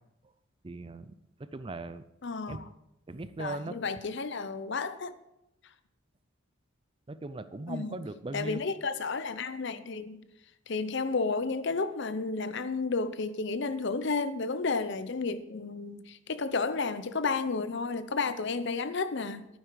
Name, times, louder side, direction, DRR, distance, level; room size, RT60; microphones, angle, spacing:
voice 1, 0.6-1.1 1.4-2.0 2.5-2.6 3.1-3.8 7.1-8.6, right 2 dB, 25° right, 0.4 m, -38 dB
voice 2, 2.2-2.7 3.4-5.1 7.7-8.0 8.3-10.2 10.7-19.5, left 4 dB, 55° left, 0.7 m, -32 dB
11.0 x 9.6 x 4.7 m
head